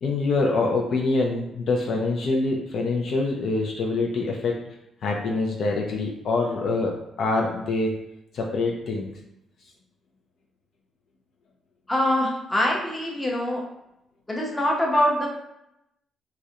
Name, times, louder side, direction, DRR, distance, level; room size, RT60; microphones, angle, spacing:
voice 1, 0.0-4.5 5.0-7.9 8.3-9.1, left 3 dB, 65° left, 0 dB, 0.3 m, -25 dB
voice 2, 11.9-13.6 14.3-15.3, left 1 dB, 15° left, -2 dB, 0.7 m, -23 dB
2.3 x 2.0 x 2.7 m, 0.85 s
cardioid pair, 90°, 0 cm